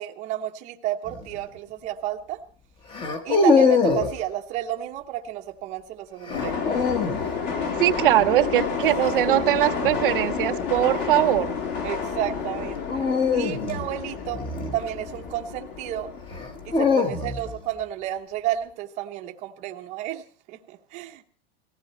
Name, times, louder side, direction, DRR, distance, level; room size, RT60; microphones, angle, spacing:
voice 1, 0.0-2.4 3.2-6.6 9.3-9.6 11.8-13.0 13.3-14.4 14.7-16.1 16.6-21.2, right 12 dB, 20° right, 0.8 m, -32 dB
sound 1, 1.1-1.4 2.9-4.2 6.3-7.3 9.7-10.1 12.9-15.2 16.3-17.6, left 4 dB, 15° left, 1.0 m, -23 dB
sound 2, 6.3-16.9, left 6 dB, 40° left, 2.1 m, -30 dB
voice 2, 7.8-11.5, right 14 dB, 55° right, 0.7 m, -21 dB
18.5 x 15.5 x 4.3 m
supercardioid pair, 170°, 32 cm